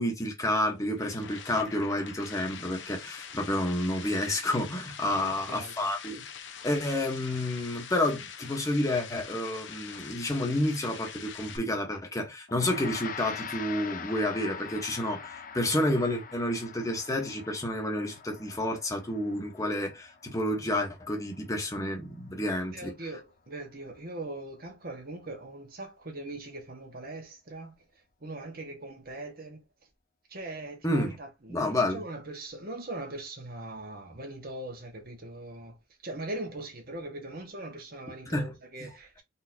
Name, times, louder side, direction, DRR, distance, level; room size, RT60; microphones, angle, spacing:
voice 1, 0.0-6.3 6.6-22.9 30.8-31.2 31.5-32.0 38.3-38.5, left 1 dB, 20° left, 1.2 m, -30 dB
sound 1, 0.6-11.6, left 7 dB, 75° left, 0.8 m, -44 dB
voice 2, 5.1-5.9 22.7-27.7 28.2-29.6 30.3-35.8 36.0-39.2, right 2 dB, 50° right, 1.6 m, -41 dB
Gong, 12.5-22.0, left 7 dB, 45° left, 0.6 m, -43 dB
4.2 x 3.7 x 2.8 m
head